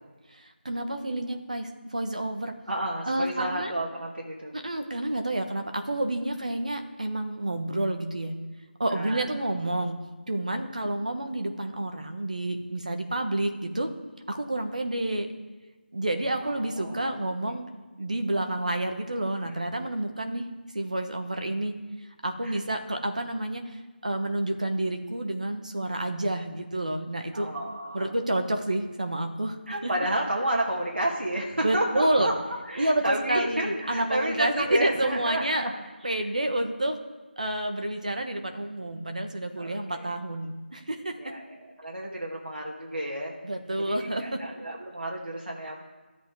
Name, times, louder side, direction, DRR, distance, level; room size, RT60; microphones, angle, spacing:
voice 1, 0.3-2.5 3.1-3.7 4.5-8.4 8.8-10.0 10.3-13.9 14.3-15.3 15.9-17.6 18.0-20.5 20.7-21.8 22.2-27.5 27.9-29.6 29.8-29.9 31.6-32.3 32.8-35.7 36.0-37.0 37.4-41.4 43.4-44.4, right 1 dB, 40° right, 6 dB, 1.2 m, -29 dB
voice 2, 2.7-4.5 8.9-9.3 16.4-17.2 22.4-22.6 27.3-28.1 29.7-32.3 32.7-35.7 39.6-40.1 41.2-43.3 43.8-45.8, right 1 dB, 80° right, -3 dB, 2.1 m, -31 dB
13.5 x 8.2 x 4.7 m, 1.3 s
figure-of-eight pair, 180°, 6 cm